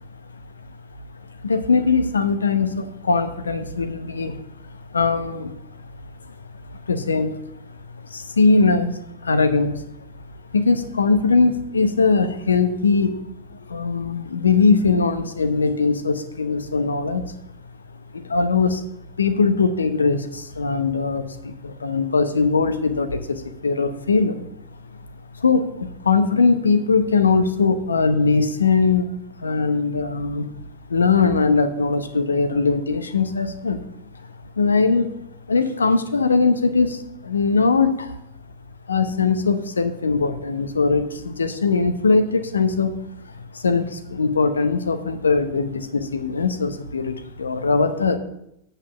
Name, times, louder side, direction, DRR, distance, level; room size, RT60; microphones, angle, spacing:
voice 1, 1.4-4.4 4.9-5.5 6.9-7.3 8.1-9.8 10.5-13.2 13.7-17.2 18.2-18.8 19.2-24.4 25.4-29.1 29.4-30.5 30.9-33.8 34.6-35.1 35.5-38.1 38.9-43.0 43.5-48.2, left 4 dB, 75° left, 10 dB, 0.9 m, -20 dB
8.4 x 5.6 x 7.1 m, 0.79 s
figure-of-eight pair, 90°, 0 cm